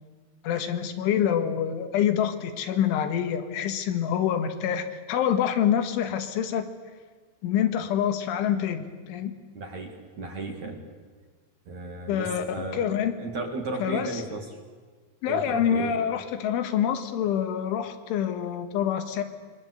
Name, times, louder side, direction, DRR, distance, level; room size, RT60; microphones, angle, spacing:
voice 1, 0.4-6.7 7.4-9.4 12.1-12.5 12.7-13.2 13.8-14.2 15.2-19.2, left 9 dB, 80° left, 7 dB, 4.0 m, -26 dB
voice 2, 9.5-10.8 11.7-12.8 13.2-14.4 15.3-16.0, right 3 dB, 45° right, 2 dB, 2.8 m, -35 dB
27.0 x 23.0 x 8.1 m, 1.5 s
omnidirectional pair, 5.6 m